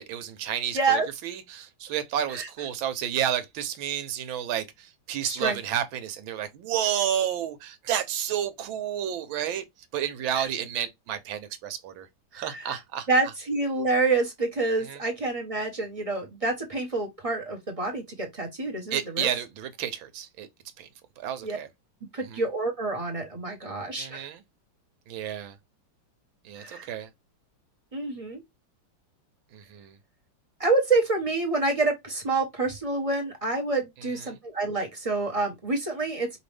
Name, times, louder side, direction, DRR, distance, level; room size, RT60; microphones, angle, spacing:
voice 1, 0.0-9.7 9.9-12.1 12.3-13.1 14.8-15.0 18.9-20.5 20.8-20.9 21.2-21.7 22.2-22.4 24.0-24.4 25.1-25.6 26.4-27.1 29.5-30.0 34.2-34.4, right 10 dB, 85° right, 1.6 m, -31 dB
voice 2, 0.7-1.1 2.3-2.5 5.2-5.6 10.3-10.5 12.3-12.8 13.1-19.3 21.4-21.6 22.1-24.3 26.6-26.9 27.9-28.4 30.6-36.4, right 3 dB, 25° right, 0.7 m, -27 dB
5.2 x 2.7 x 3.3 m
omnidirectional pair, 2.1 m